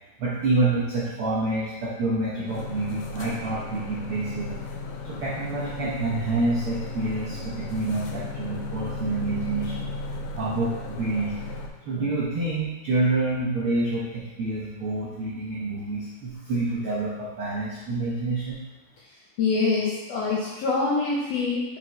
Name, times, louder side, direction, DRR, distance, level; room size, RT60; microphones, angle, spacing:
voice 1, 0.2-4.6 5.0-9.9 10.3-11.3 11.8-18.6, right 2 dB, 75° right, -6 dB, 1.2 m, -27 dB
sound 1, 2.5-11.7, left 3 dB, 90° left, 2.3 m, -35 dB
voice 2, 19.4-21.6, left 4 dB, 75° left, -5 dB, 1.5 m, -25 dB
6.3 x 4.8 x 3.1 m, 1.1 s
omnidirectional pair, 3.8 m